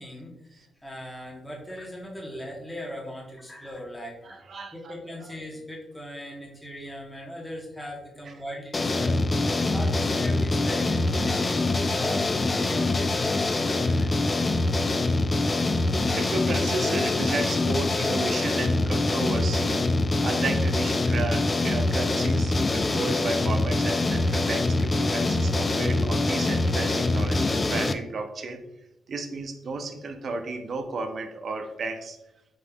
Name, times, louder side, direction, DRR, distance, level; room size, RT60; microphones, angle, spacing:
voice 1, 0.0-4.3 4.7-9.2 9.7-14.3, equal, 10° left, -3 dB, 1.1 m, -39 dB
voice 2, 4.3-4.9 16.1-19.8 20.2-28.6 29.1-32.2, right 3 dB, 50° right, 6 dB, 0.5 m, -33 dB
sound 1, 8.7-27.9, left 2 dB, 25° left, 0.3 m, -24 dB
5.1 x 3.5 x 2.3 m, 0.90 s
cardioid pair, 120°, 0 cm